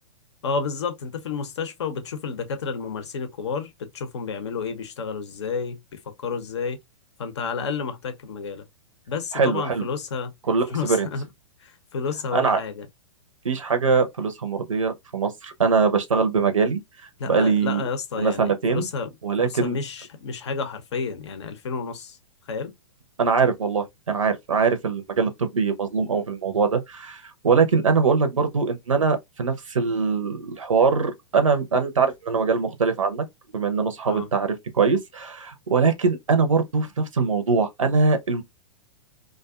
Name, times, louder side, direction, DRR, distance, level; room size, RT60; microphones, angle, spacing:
voice 1, 0.4-5.8 6.2-6.8 7.2-8.6 9.1-10.3 10.7-11.3 11.6-12.9 17.2-22.2 22.5-22.7 34.1-34.3, left 5 dB, 60° left, 0.6 m, -30 dB
voice 2, 9.3-9.9 10.5-11.1 12.3-12.6 13.4-16.8 17.3-17.8 18.2-18.9 19.2-19.8 23.2-33.2 33.5-38.4, right 5 dB, 75° right, 0.6 m, -22 dB
2.4 x 2.3 x 2.3 m
figure-of-eight pair, 110°, 17 cm